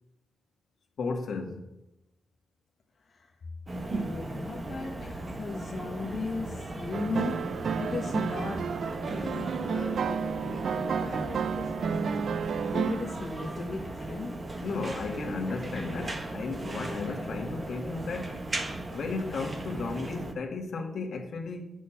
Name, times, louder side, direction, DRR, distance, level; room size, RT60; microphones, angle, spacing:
voice 1, 1.0-1.6 14.6-18.4 18.9-21.8, left 4 dB, 75° left, 3 dB, 1.8 m, -34 dB
sound 1, 3.7-20.3, right 2 dB, 35° right, 1.3 m, -37 dB
voice 2, 3.9-8.6 9.2-12.2 12.7-14.3, left 3 dB, 50° left, 1 dB, 1.1 m, -37 dB
sound 2, 6.9-13.2, right 6 dB, 75° right, 0.5 m, -31 dB
8.2 x 6.4 x 7.1 m, 0.90 s
cardioid pair, 95°, 0 cm